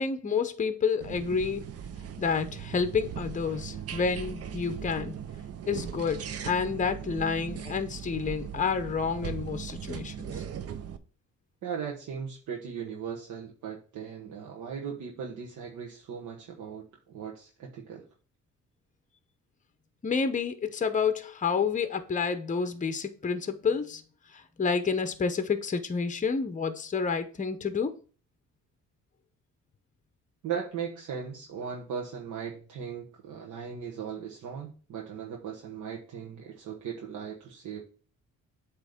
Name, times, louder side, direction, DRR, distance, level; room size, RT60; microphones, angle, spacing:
voice 1, 0.0-1.7 2.2-5.1 5.7-10.3 20.0-24.0 24.3-27.9, left 5 dB, 25° left, 0.8 m, -29 dB
sound 1, 1.0-11.0, right 8 dB, 55° right, 0.7 m, -39 dB
voice 2, 11.6-18.0 30.4-37.8, right 7 dB, 75° right, 1.2 m, -38 dB
8.0 x 3.2 x 5.0 m
cardioid pair, 90°, 30 cm